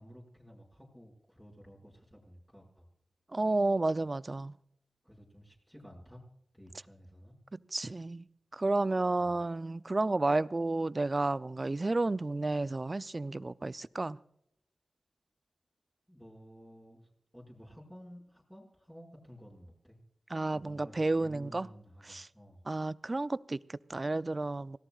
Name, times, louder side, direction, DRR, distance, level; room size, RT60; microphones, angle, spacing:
voice 1, 0.0-2.9 5.0-6.2 6.5-7.4 9.1-9.3 16.1-20.0 20.5-22.6, equal, 5° left, 5.7 m, -53 dB
voice 2, 3.3-4.5 7.5-8.2 8.5-14.2 20.3-21.7 22.1-22.3 22.7-24.8, right 2 dB, 40° right, 0.5 m, -31 dB
26.0 x 17.5 x 2.4 m
cardioid pair, 50°, 0 cm